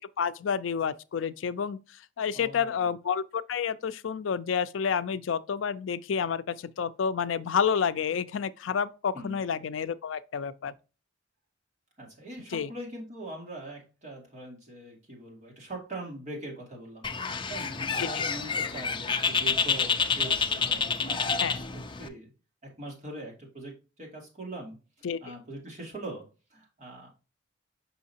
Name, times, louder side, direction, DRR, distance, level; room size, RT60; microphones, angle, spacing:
voice 1, 0.2-1.8 2.2-10.7 12.5-12.7 18.0-18.2 21.4-21.6 25.0-25.2, left 7 dB, 80° left, 0.4 m, -29 dB
voice 2, 2.3-2.9 9.1-9.4 12.0-17.1 17.5-22.3 22.6-27.1, right 1 dB, 40° right, 2.5 m, -42 dB
Bird, 17.0-22.1, left 5 dB, 25° left, 0.5 m, -28 dB
6.2 x 5.6 x 2.8 m
head